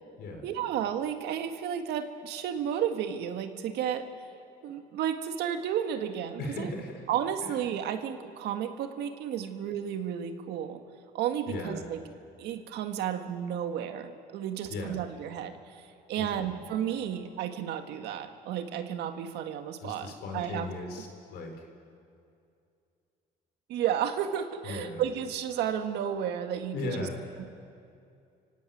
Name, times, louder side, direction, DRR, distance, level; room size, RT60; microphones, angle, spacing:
voice 1, 0.4-4.1 4.6-6.7 7.1-10.8 11.1-12.0 12.4-20.7 23.7-27.1 27.4-27.5, right 9 dB, 80° right, 7 dB, 1.8 m, -32 dB
voice 2, 6.4-7.1 7.4-7.6 11.5-11.8 14.7-15.1 16.2-16.4 19.8-21.7 24.6-25.0 26.7-27.4, left 2 dB, 75° left, 3 dB, 4.6 m, -37 dB
30.0 x 16.5 x 9.3 m, 2.5 s
cardioid pair, 110°, 17 cm